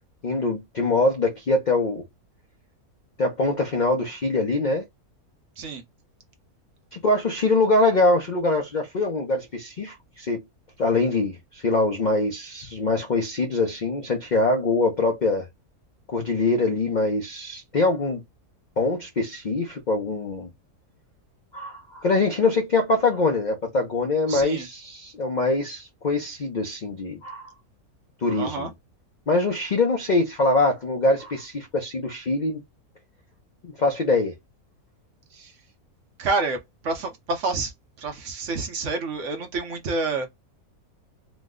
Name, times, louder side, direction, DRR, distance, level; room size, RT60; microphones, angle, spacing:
voice 1, 0.2-2.0 3.2-4.8 6.9-10.4 10.8-15.5 16.1-18.2 18.8-20.5 21.5-27.5 28.2-28.7 29.3-32.6 33.6-34.3, left 2 dB, 60° left, 0.4 m, -23 dB
voice 2, 24.3-24.7 28.4-28.7 35.3-35.5 36.2-36.6 36.8-37.7 38.0-40.3, right 3 dB, 60° right, 1.0 m, -28 dB
3.1 x 2.1 x 3.6 m
omnidirectional pair, 1.6 m